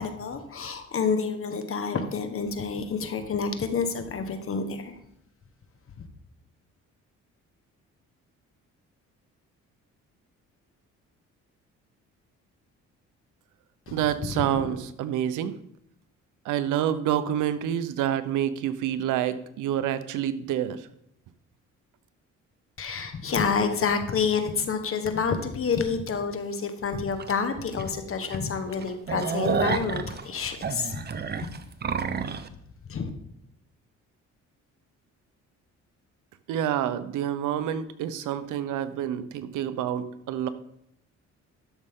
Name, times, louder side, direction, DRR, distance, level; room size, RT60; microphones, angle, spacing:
voice 1, 0.0-5.0 13.9-14.0 14.2-14.8 22.8-31.0 32.9-33.1, left 5 dB, 45° left, 8 dB, 1.3 m, -28 dB
voice 2, 13.9-15.5 16.5-20.8 36.5-40.5, right 10 dB, 90° right, 13 dB, 0.7 m, -28 dB
sound 1, 27.2-27.3 27.8-27.9 28.2-28.4 28.7-32.5, right 6 dB, 35° right, 0.7 m, -29 dB
12.5 x 6.4 x 3.7 m, 0.76 s
cardioid pair, 90°, 30 cm